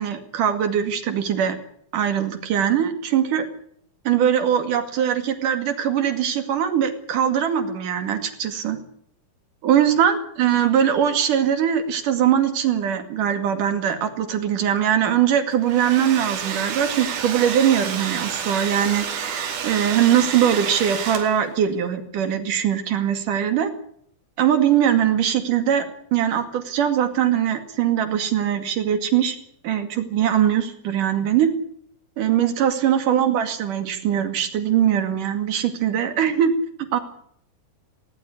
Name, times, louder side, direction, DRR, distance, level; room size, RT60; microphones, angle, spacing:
voice 1, 0.0-1.6 1.9-3.4 4.1-8.8 9.6-19.1 19.6-23.7 24.4-29.4 29.6-31.5 32.2-36.5 36.9-37.0, right 9 dB, 60° right, 8 dB, 3.7 m, -21 dB
Domestic sounds home sounds, 15.5-21.6, right 7 dB, 80° right, 4.3 m, -29 dB
19.0 x 18.0 x 9.9 m, 0.68 s
omnidirectional pair, 4.2 m